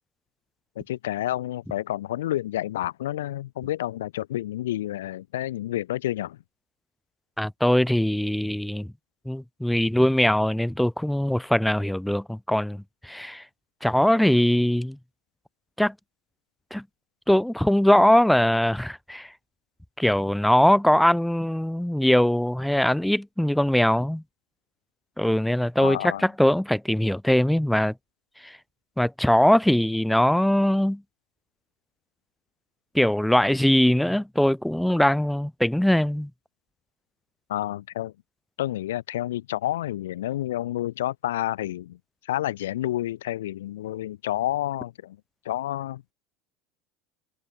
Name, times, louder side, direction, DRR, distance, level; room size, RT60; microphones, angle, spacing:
voice 1, 0.8-6.4 25.8-26.2 37.5-38.1 38.6-42.0 42.2-45.2 45.4-46.0, left 14 dB, 85° left, 0.8 m, -29 dB
voice 2, 7.4-8.9 9.3-13.4 13.8-15.0 15.8-15.9 16.7-16.8 17.3-19.3 20.0-24.2 25.2-27.9 28.4-28.6 29.0-31.0 32.9-36.3, left 1 dB, 5° left, 1.1 m, -21 dB
hypercardioid pair, 85°, 0 cm